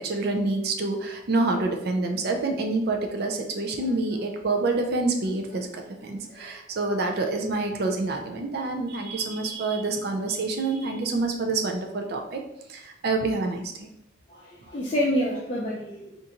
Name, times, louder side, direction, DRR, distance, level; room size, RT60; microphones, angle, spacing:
voice 1, 0.0-12.4 12.7-13.9, right 3 dB, 55° right, 4 dB, 0.4 m, -27 dB
voice 2, 6.0-6.5 14.3-16.2, equal, 35° left, -5 dB, 0.5 m, -28 dB
3.6 x 2.5 x 2.8 m, 0.83 s
head